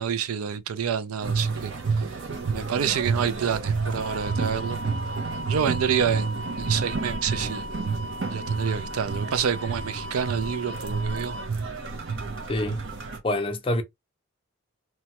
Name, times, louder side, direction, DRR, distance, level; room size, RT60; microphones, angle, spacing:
voice 1, 0.0-2.1 2.5-4.8 5.5-7.7 8.3-11.4, right 7 dB, 85° right, 0.4 m, -28 dB
sound 1, 1.2-13.2, right 4 dB, 55° right, 0.7 m, -30 dB
sound 2, 3.9-11.5, equal, 40° right, 1.1 m, -38 dB
voice 2, 12.5-12.8 13.2-13.8, left 1 dB, 25° left, 0.5 m, -25 dB
3.0 x 2.2 x 2.8 m
head